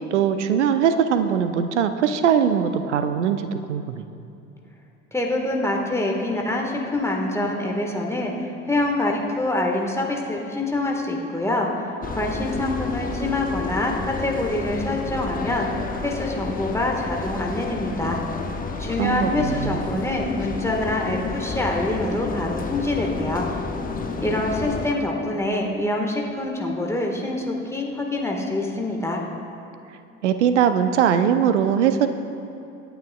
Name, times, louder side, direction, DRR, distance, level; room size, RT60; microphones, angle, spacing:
voice 1, 0.1-4.0 19.0-19.8 30.2-32.1, right 8 dB, 70° right, 9 dB, 0.7 m, -21 dB
voice 2, 5.1-18.2 18.8-23.5 24.2-29.2, left 2 dB, 5° left, -1 dB, 1.6 m, -25 dB
sound 1, 12.0-24.9, left 4 dB, 25° left, 1.0 m, -31 dB
26.0 x 9.2 x 2.4 m, 2.7 s
figure-of-eight pair, 60°, 36 cm